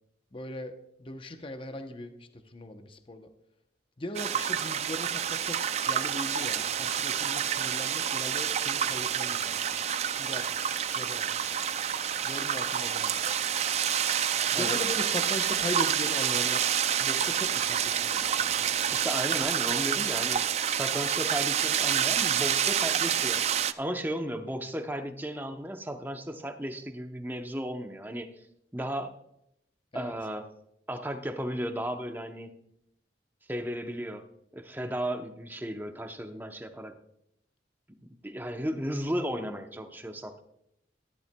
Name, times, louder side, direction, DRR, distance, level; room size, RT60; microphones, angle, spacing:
voice 1, 0.3-0.7 1.0-3.3 4.0-5.6 5.9-10.5 10.9-11.4 12.2-13.2 14.5-16.7 17.0-19.0 29.9-30.1, left 1 dB, 30° left, 7 dB, 0.7 m, -39 dB
sound 1, 4.2-23.7, right 9 dB, 35° right, 0.3 m, -28 dB
Bird, 10.9-19.4, left 3 dB, 60° left, 2.2 m, -54 dB
voice 2, 18.9-23.5 23.8-28.3 28.7-29.2 29.9-30.5 30.9-32.5 33.5-34.3 34.5-36.9 38.2-40.4, equal, 10° right, 7 dB, 0.7 m, -34 dB
13.5 x 11.0 x 2.2 m, 0.78 s
head